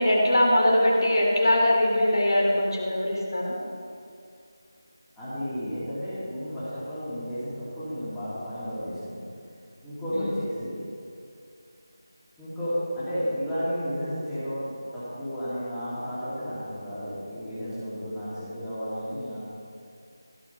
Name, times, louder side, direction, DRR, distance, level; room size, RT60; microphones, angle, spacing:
voice 1, 0.0-3.5 10.1-10.3, left 1 dB, 65° left, -2 dB, 3.1 m, -22 dB
voice 2, 5.2-9.2 9.8-10.8 12.4-19.4, equal, 5° left, -15 dB, 2.8 m, -32 dB
16.0 x 6.3 x 5.6 m, 2.4 s
figure-of-eight pair, 175°, 2 cm